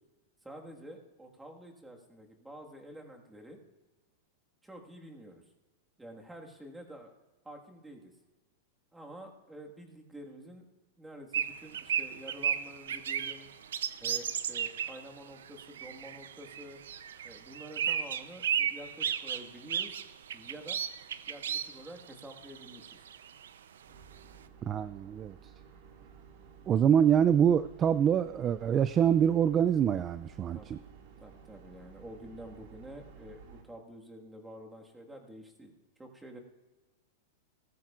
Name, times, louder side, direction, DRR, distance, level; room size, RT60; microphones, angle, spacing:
voice 1, 0.4-3.6 4.6-5.4 6.0-7.1 7.4-8.1 8.9-10.7 11.0-13.5 14.0-16.8 17.2-20.0 20.3-20.8 21.3-23.0 30.5-30.7 31.2-35.7 36.0-36.4, right 1 dB, 5° right, 1 dB, 1.7 m, -48 dB
sound 1, 11.3-15.0 15.4-23.5, right 9 dB, 90° right, 0.6 m, -34 dB
sound 2, 23.9-33.6, right 7 dB, 60° right, 2.1 m, -54 dB
voice 2, 24.6-25.4 26.7-30.8, right 8 dB, 25° right, 14 dB, 0.3 m, -25 dB
18.0 x 14.0 x 2.5 m, 1.1 s
supercardioid pair, 145°, 0 cm